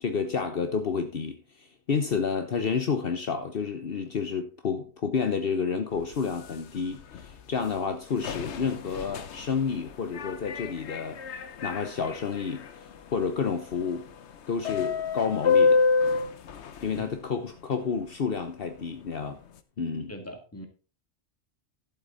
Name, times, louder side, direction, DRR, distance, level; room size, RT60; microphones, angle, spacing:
voice 1, 0.0-11.2 11.6-12.6 13.1-14.1 14.5-15.8 16.8-19.4 19.8-20.1, left 5 dB, 60° left, 1.1 m, -30 dB
sound 1, 5.9-17.4 18.3-18.4 18.8-19.0 19.6-19.7, left 4 dB, 80° left, 1.1 m, -30 dB
voice 2, 20.1-20.7, equal, 15° left, 1.9 m, -40 dB
11.5 x 7.8 x 4.0 m
omnidirectional pair, 1.1 m